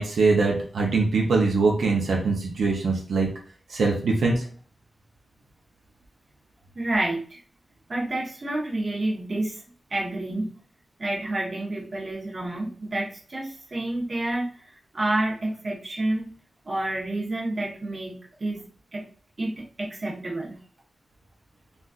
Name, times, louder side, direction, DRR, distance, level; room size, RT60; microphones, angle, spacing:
voice 1, 0.0-3.3 3.7-4.5, right 3 dB, 85° right, -1 dB, 0.6 m, -22 dB
voice 2, 6.7-7.4 7.9-9.6 9.9-10.5 11.0-14.7 14.9-16.3 16.6-18.6 18.9-19.0 19.4-20.6, right 1 dB, 40° right, -4 dB, 1.0 m, -29 dB
3.9 x 2.4 x 2.4 m, 0.43 s
wide cardioid pair, 135°, 0 cm